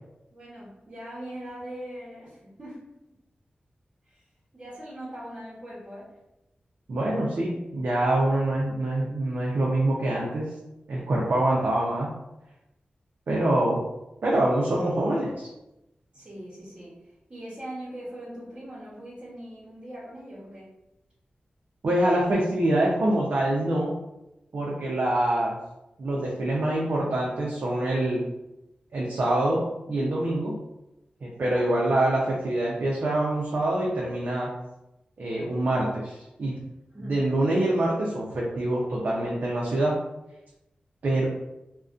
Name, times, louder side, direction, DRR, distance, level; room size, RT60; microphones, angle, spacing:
voice 1, 0.3-2.8 4.0-4.2 4.5-6.1 16.1-16.9 17.3-20.7 31.5-31.8 36.9-37.2, right 1 dB, 40° right, -10 dB, 0.8 m, -41 dB
voice 2, 6.9-10.5 10.9-12.1 13.3-13.8 14.2-15.5 21.8-24.0 24.5-25.6 26.0-28.2 28.9-30.6 31.2-34.5 35.2-36.6 37.1-40.0 41.0-41.3, right 1 dB, 70° right, -4 dB, 0.4 m, -25 dB
2.4 x 2.1 x 2.4 m, 0.93 s
wide cardioid pair, 80°, 3 cm